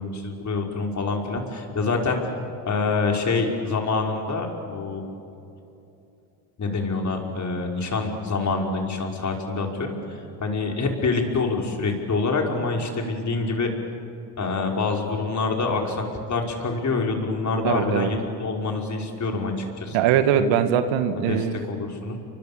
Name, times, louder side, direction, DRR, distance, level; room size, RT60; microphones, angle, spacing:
voice 1, 0.0-2.4 2.6-5.0 6.6-10.0 10.4-13.7 14.4-20.0 20.3-20.4 21.3-22.2, left 3 dB, 35° left, 1 dB, 5.4 m, -26 dB
voice 2, 17.6-18.1 19.9-21.6, right 9 dB, 70° right, 9 dB, 1.9 m, -21 dB
30.0 x 24.5 x 7.0 m, 2.8 s
hypercardioid pair, 70°, 48 cm